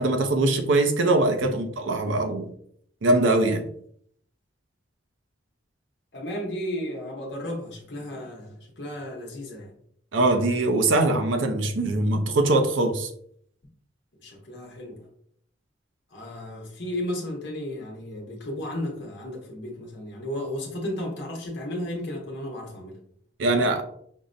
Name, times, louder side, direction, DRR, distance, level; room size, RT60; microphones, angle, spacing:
voice 1, 0.0-2.5 3.0-3.6 10.1-13.1 23.4-23.8, right 2 dB, 80° right, 6 dB, 0.5 m, -22 dB
voice 2, 6.1-9.7 14.2-15.1 16.1-23.0, left 1 dB, 65° left, -1 dB, 0.8 m, -34 dB
5.3 x 2.1 x 2.5 m, 0.65 s
head